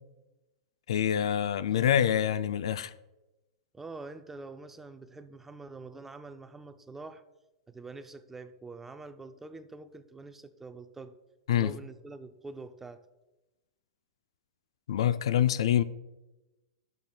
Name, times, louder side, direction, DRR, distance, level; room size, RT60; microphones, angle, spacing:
voice 1, 0.9-2.9 11.5-11.7 14.9-15.8, left 10 dB, 75° left, 0.3 m, -26 dB
voice 2, 3.7-7.2 7.7-11.2 11.6-13.1, right 3 dB, 10° right, 0.4 m, -45 dB
12.0 x 6.6 x 2.2 m
hypercardioid pair, 135°, 3 cm